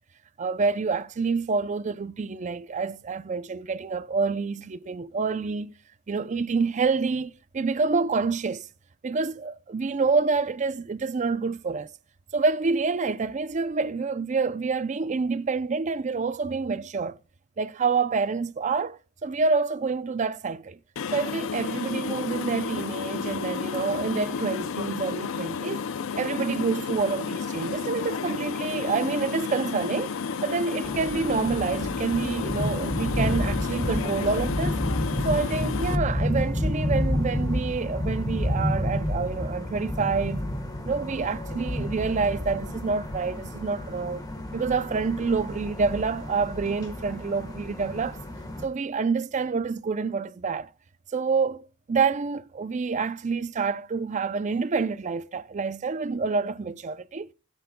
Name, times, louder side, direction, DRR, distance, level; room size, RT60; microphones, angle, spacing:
voice 1, 0.4-5.7 6.1-8.7 9.0-11.9 12.3-17.2 17.6-20.8 21.1-25.8 26.2-30.2 30.4-34.8 35.2-40.4 40.8-44.2 44.5-48.2 48.6-50.7 51.1-57.3, right 4 dB, 35° right, 0.4 m, -27 dB
sound 1, 21.0-36.0, left 5 dB, 70° left, 0.5 m, -32 dB
sound 2, 30.8-48.6, left 1 dB, 20° left, 1.3 m, -30 dB
20.0 x 6.8 x 2.2 m
head